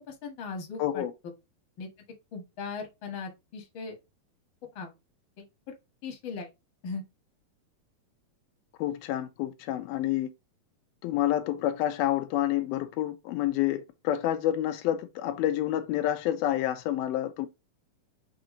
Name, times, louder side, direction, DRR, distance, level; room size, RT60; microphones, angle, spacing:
voice 1, 0.1-1.1 1.8-1.9 2.3-4.0 4.8-4.9 5.4-5.5 6.0-6.5 6.8-7.0, left 4 dB, 40° left, 2.0 m, -38 dB
voice 2, 0.8-1.1 8.8-10.3 11.0-17.5, left 12 dB, 90° left, 2.6 m, -28 dB
6.0 x 4.1 x 3.9 m
omnidirectional pair, 4.2 m